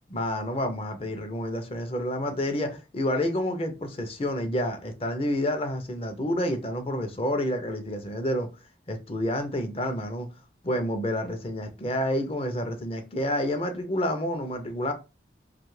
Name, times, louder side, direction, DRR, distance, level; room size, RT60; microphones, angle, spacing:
voice 1, 0.1-8.5 8.9-10.3 10.6-14.9, left 1 dB, 30° left, 0.5 m, -29 dB
2.7 x 2.4 x 3.1 m
head